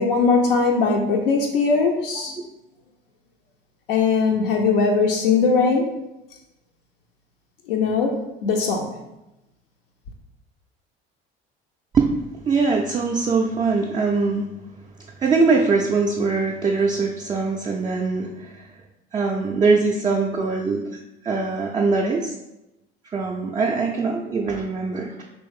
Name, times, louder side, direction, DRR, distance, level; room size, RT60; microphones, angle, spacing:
voice 1, 0.0-2.4 3.9-5.9 7.7-9.0, left 4 dB, 65° left, 1 dB, 0.5 m, -20 dB
voice 2, 12.5-14.5 15.2-18.7 19.1-22.3 23.1-25.2, right 4 dB, 15° right, -1 dB, 0.3 m, -22 dB
3.0 x 3.0 x 3.5 m, 0.93 s
figure-of-eight pair, 60°, 29 cm